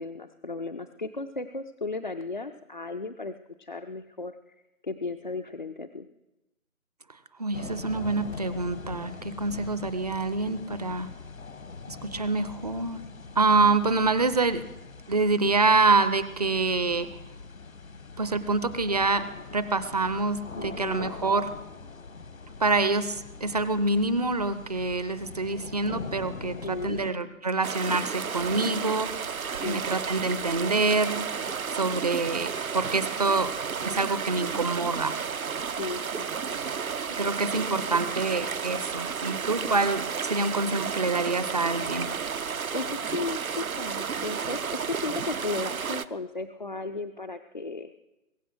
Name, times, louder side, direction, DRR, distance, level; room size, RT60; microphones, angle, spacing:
voice 1, 0.0-3.3 3.6-4.4 4.8-6.1 20.6-21.1 26.4-27.0 29.6-29.8 35.6-36.6 42.5-47.9, left 3 dB, 40° left, 5 dB, 0.4 m, -35 dB
voice 2, 7.4-11.1 11.9-13.0 13.4-14.6 15.1-17.1 18.2-19.2 19.5-21.5 22.6-29.1 29.6-31.2 31.7-33.5 33.8-35.2 37.2-42.1, right 3 dB, 30° right, 14 dB, 0.5 m, -26 dB
sound 1, 7.5-27.1, left 4 dB, 75° left, 1.4 m, -42 dB
sound 2, 27.6-46.1, right 6 dB, 80° right, 0.8 m, -32 dB
22.0 x 7.8 x 6.3 m, 0.98 s
figure-of-eight pair, 140°, 41 cm